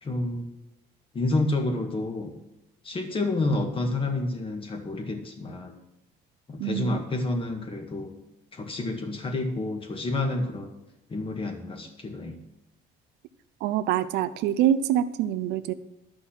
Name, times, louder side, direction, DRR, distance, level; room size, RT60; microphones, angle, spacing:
voice 1, 0.0-0.5 1.1-2.3 2.8-5.8 6.5-8.2 8.5-10.7 11.1-12.4, left 2 dB, 30° left, 4 dB, 2.0 m, -29 dB
voice 2, 6.6-7.0 13.6-15.7, right 11 dB, 85° right, 12 dB, 0.7 m, -25 dB
11.5 x 6.1 x 7.3 m, 0.87 s
cardioid pair, 110°, 17 cm